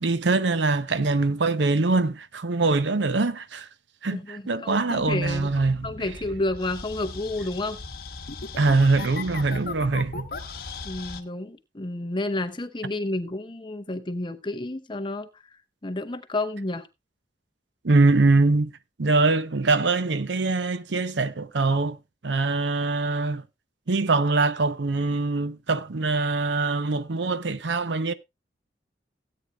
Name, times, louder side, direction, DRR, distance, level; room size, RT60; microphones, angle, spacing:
voice 1, 0.0-3.7 4.0-6.1 8.6-10.3 17.8-18.7 19.0-22.0 22.2-23.4 23.9-28.1, right 3 dB, 85° right, 0.7 m, -23 dB
voice 2, 4.1-5.5 5.8-7.8 10.8-15.3 15.8-16.9, left 2 dB, 25° left, 0.8 m, -30 dB
sound 1, 5.0-11.2, left 4 dB, 55° left, 1.1 m, -38 dB
16.5 x 8.8 x 2.3 m
head